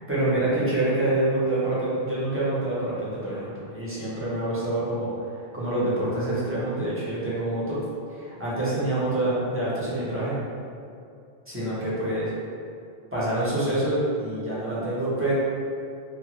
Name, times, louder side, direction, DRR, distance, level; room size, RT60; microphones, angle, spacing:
voice 1, 0.1-7.8 8.1-10.4 11.5-12.3 13.1-15.3, right 1 dB, 15° right, -10 dB, 0.7 m, -26 dB
2.9 x 2.3 x 3.0 m, 2.5 s
omnidirectional pair, 1.1 m